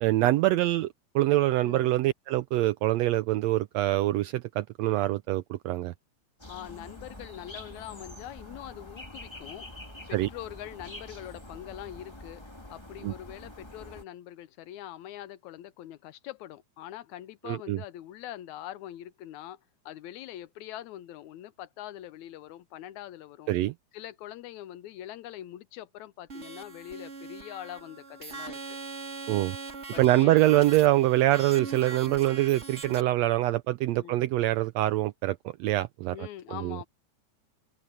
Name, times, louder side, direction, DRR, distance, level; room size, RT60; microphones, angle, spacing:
voice 1, 0.0-0.9 1.1-5.9 10.1-10.3 13.0-13.1 17.4-17.8 23.5-23.7 29.3-29.6 30.0-36.3 36.6-36.8, right 16 dB, 80° right, 1.5 m, -24 dB
sound 1, 6.4-14.0, left 1 dB, 10° left, 2.0 m, -46 dB
voice 2, 6.5-9.7 10.1-12.4 12.7-23.5 23.9-28.8 29.9-30.6 34.0-34.2 36.1-36.9, left 12 dB, 80° left, 2.1 m, -43 dB
sound 2, 26.3-33.0, right 4 dB, 30° right, 1.5 m, -41 dB
open air
omnidirectional pair, 3.5 m